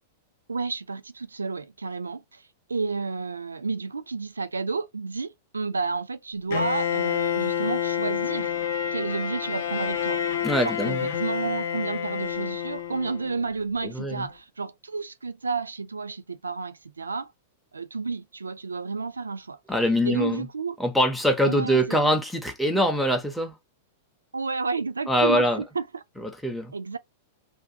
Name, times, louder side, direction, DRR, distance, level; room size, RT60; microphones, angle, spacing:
voice 1, 0.5-2.4 2.7-8.6 8.9-10.2 10.6-17.3 17.7-19.6 20.0-20.8 21.4-22.1 24.3-26.0 26.7-27.0, right 4 dB, 80° right, 0.3 m, -31 dB
Bowed string instrument, 6.5-13.4, left 9 dB, 60° left, 0.5 m, -28 dB
voice 2, 10.4-11.1 13.9-14.2 19.7-20.4 20.8-23.5 25.1-25.6 26.2-26.7, equal, ahead, 0.6 m, -23 dB
2.5 x 2.2 x 2.5 m
figure-of-eight pair, 95°, 0 cm